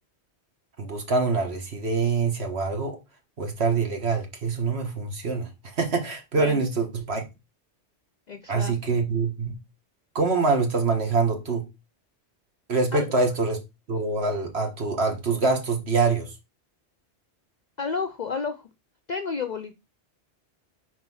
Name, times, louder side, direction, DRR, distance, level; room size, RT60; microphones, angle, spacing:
voice 1, 0.8-3.0 3.4-5.5 5.8-7.2 8.5-9.6 10.2-11.7 12.7-13.6 13.9-16.3, right 4 dB, 65° right, 1.8 m, -25 dB
voice 2, 8.3-8.7 12.9-13.1 17.8-18.6 19.1-19.7, left 5 dB, 50° left, 0.5 m, -31 dB
4.8 x 4.1 x 5.5 m
omnidirectional pair, 1.2 m